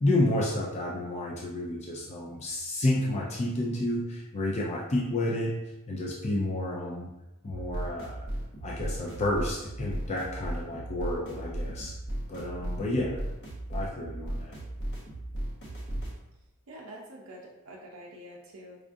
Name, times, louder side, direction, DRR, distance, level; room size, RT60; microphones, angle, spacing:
voice 1, 0.0-5.6 5.9-7.1 7.4-8.2 8.6-11.9 12.3-13.2 13.7-14.5, left 1 dB, 30° left, -3 dB, 0.4 m, -30 dB
sound 1, 7.4-16.2, right 1 dB, 55° left, 0.9 m, -36 dB
voice 2, 16.7-18.8, right 1 dB, 65° right, -2 dB, 0.5 m, -46 dB
4.7 x 2.4 x 2.5 m, 0.95 s
head